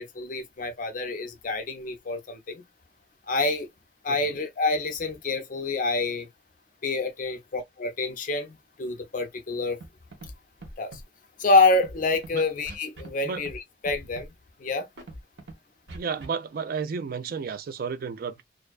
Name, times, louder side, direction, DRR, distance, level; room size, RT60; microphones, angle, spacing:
voice 1, 0.0-2.6 3.3-3.7 4.0-6.3 6.8-9.8 10.8-11.0 11.4-14.3 14.6-14.9, left 3 dB, 45° left, 0.5 m, -27 dB
voice 2, 4.1-4.4 12.3-12.4 13.2-13.4 15.9-18.4, right 5 dB, 50° right, 0.3 m, -32 dB
Scratching (performance technique), 9.8-9.9 10.1-10.3 10.6-11.0 11.7-12.3 12.7-13.1 13.4-13.6 13.8-14.3 15.0-15.5 15.9-16.3, right 2 dB, 70° right, 0.9 m, -41 dB
2.5 x 2.2 x 2.2 m
head